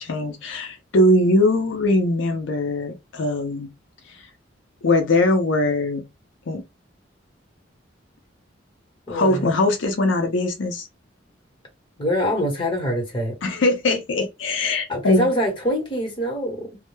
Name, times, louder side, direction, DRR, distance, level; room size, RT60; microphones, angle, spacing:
voice 1, 0.0-3.7 4.1-4.3 4.8-6.0 6.5-6.6 9.1-10.9 13.4-15.3, left 2 dB, 85° left, 0.5 m, -21 dB
voice 2, 9.1-9.5 12.0-13.4 14.9-16.8, equal, 25° left, 1.0 m, -24 dB
2.1 x 2.0 x 3.0 m
head